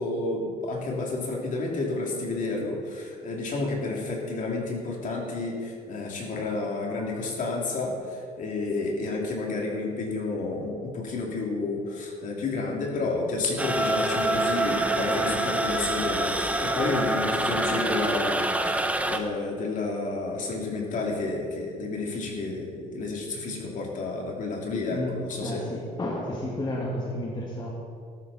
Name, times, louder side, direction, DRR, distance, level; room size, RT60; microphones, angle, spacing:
voice 1, 0.0-25.7, left 3 dB, 50° left, -1 dB, 2.9 m, -30 dB
sound 1, 13.6-19.2, right 1 dB, 10° right, 0.9 m, -26 dB
voice 2, 24.9-27.7, left 1 dB, 25° left, -3 dB, 2.0 m, -32 dB
14.0 x 12.0 x 4.2 m, 2.3 s
cardioid pair, 110°, 17 cm